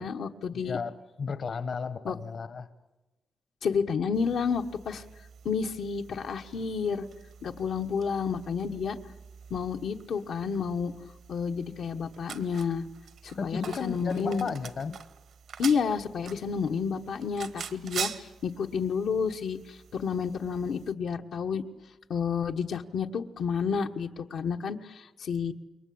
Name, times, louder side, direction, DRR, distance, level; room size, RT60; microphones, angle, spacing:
voice 1, 0.0-0.8 2.0-2.2 3.6-5.0 5.4-7.1 7.4-9.0 9.5-10.9 11.3-12.9 13.2-14.5 15.6-21.6 22.1-25.5, left 6 dB, 75° left, 4 dB, 1.3 m, -30 dB
voice 2, 0.5-2.7 13.3-15.0, left 5 dB, 50° left, 12 dB, 1.2 m, -34 dB
sound 1, 4.1-20.9, right 7 dB, 80° right, 1.4 m, -45 dB
28.0 x 22.5 x 8.7 m, 1.1 s
wide cardioid pair, 150°, 0 cm